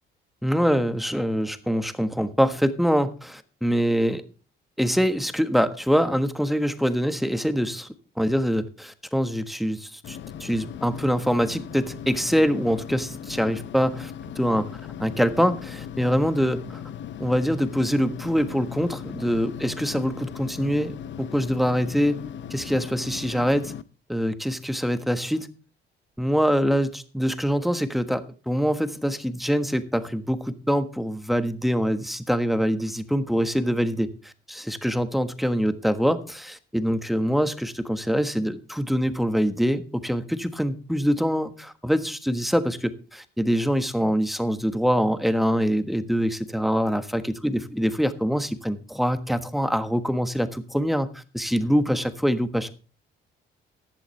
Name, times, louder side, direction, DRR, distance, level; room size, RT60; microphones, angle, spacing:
voice 1, 0.4-4.2 4.8-7.9 8.2-14.7 15.0-16.6 17.2-22.2 22.5-23.7 24.1-25.5 26.2-52.7, equal, ahead, 10 dB, 1.4 m, -24 dB
sound 1, 10.0-23.8, left 9 dB, 70° left, 0.8 m, -38 dB
15.0 x 11.5 x 3.3 m, 0.35 s
cardioid pair, 90°, 20 cm